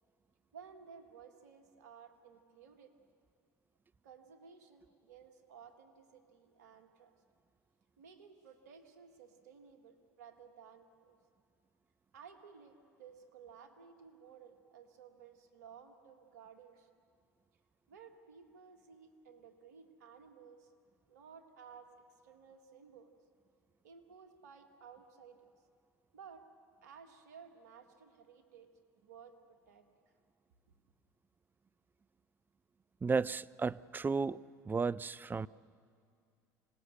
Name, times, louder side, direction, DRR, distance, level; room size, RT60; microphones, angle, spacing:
voice 1, 0.5-2.9 4.0-7.1 8.0-11.2 12.1-17.0 17.9-20.7 21.1-21.9 22.2-23.1 23.8-25.5 26.1-26.4 26.8-30.1, right 6 dB, 85° right, 2.0 m, -56 dB
voice 2, 33.0-34.4 34.7-35.5, right 4 dB, 20° right, 0.5 m, -33 dB
26.0 x 19.0 x 6.8 m
hypercardioid pair, 70°, 9 cm